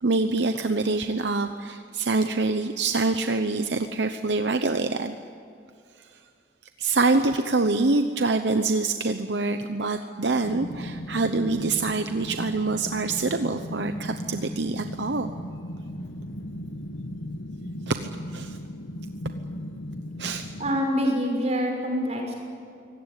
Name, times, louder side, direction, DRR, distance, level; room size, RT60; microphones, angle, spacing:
voice 1, 0.0-5.1 6.0-6.1 6.8-15.3 17.9-18.6 20.2-20.5, right 3 dB, 70° right, 8 dB, 0.9 m, -25 dB
sound 1, 10.4-20.8, left 1 dB, 85° left, 1.2 m, -37 dB
voice 2, 20.6-22.3, equal, 35° right, 1 dB, 6.1 m, -25 dB
24.5 x 17.5 x 9.9 m, 2.4 s
head